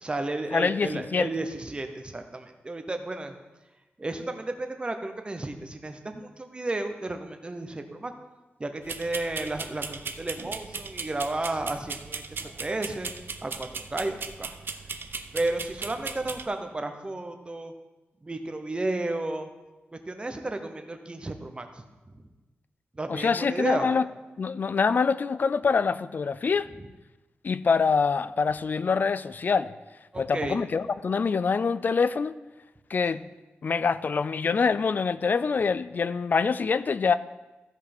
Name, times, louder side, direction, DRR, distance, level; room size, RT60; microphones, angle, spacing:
voice 1, 0.0-3.3 4.0-8.1 8.6-12.2 12.6-13.1 13.4-14.6 15.3-17.7 18.2-19.5 20.1-21.7 22.9-23.9 30.1-30.6, right 2 dB, 25° right, 0.8 m, -32 dB
voice 2, 0.5-1.3 23.1-24.1 24.4-26.7 27.4-29.7 30.2-32.3 32.9-33.2 33.6-37.2, left 5 dB, 50° left, 0.3 m, -25 dB
sound 1, 8.8-16.4, right 4 dB, 60° right, 0.6 m, -38 dB
14.5 x 5.3 x 4.3 m
wide cardioid pair, 130°, 4 cm